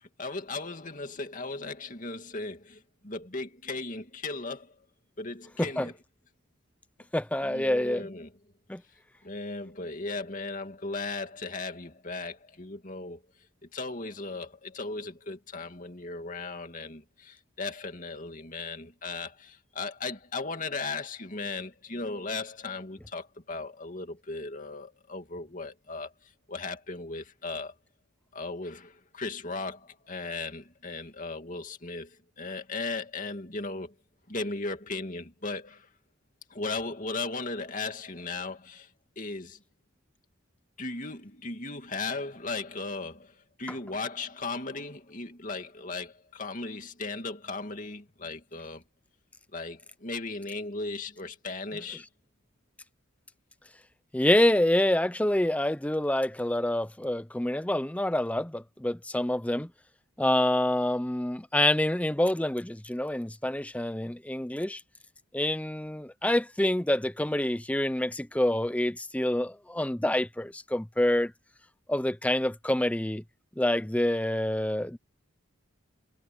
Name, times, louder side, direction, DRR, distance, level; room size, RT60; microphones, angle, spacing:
voice 1, 0.2-4.7 5.2-5.9 7.4-8.3 9.2-13.2 13.7-26.1 26.5-27.7 28.3-33.9 34.3-35.9 36.5-38.9 39.2-39.6 40.8-48.8 49.5-52.0, left 3 dB, 40° left, 2.4 m, -37 dB
voice 2, 7.1-8.1 8.7-8.8 54.1-59.7 60.2-64.8 65.3-71.3 71.9-73.2 73.6-75.0, left 1 dB, 5° left, 0.6 m, -27 dB
head